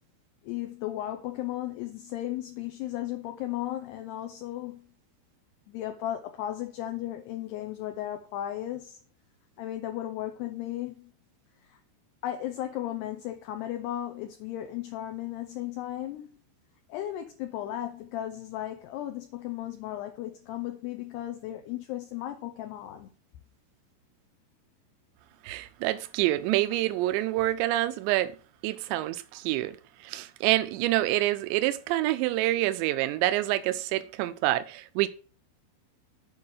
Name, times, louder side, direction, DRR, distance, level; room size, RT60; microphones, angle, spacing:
voice 1, 0.4-4.9 5.7-9.0 9.6-11.1 11.6-11.8 12.2-16.3 16.9-23.1, left 13 dB, 80° left, 2.5 m, -35 dB
voice 2, 25.4-28.3 28.6-35.1, right 16 dB, 80° right, 2.8 m, -27 dB
8.7 x 4.8 x 6.5 m
omnidirectional pair, 5.5 m